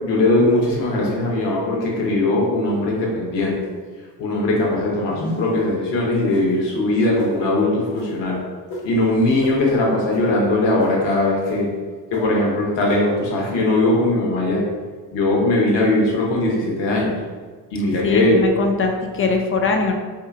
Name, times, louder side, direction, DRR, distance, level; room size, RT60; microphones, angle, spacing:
voice 1, 0.0-3.6 4.2-8.4 8.8-11.7 12.1-14.6 15.1-17.1 17.7-18.4, left 2 dB, 60° left, -3 dB, 1.0 m, -20 dB
sound 1, 5.1-5.6 6.3-6.5 7.2-7.3 7.9-8.1 8.7-8.8 9.4-9.5 10.1-10.2 10.8-10.9 11.5-11.6 12.1-12.2, left 1 dB, 80° left, 1.2 m, -29 dB
voice 2, 18.0-19.9, left 4 dB, 30° left, 3 dB, 0.3 m, -21 dB
2.8 x 2.4 x 2.4 m, 1.5 s
supercardioid pair, 60°, 48 cm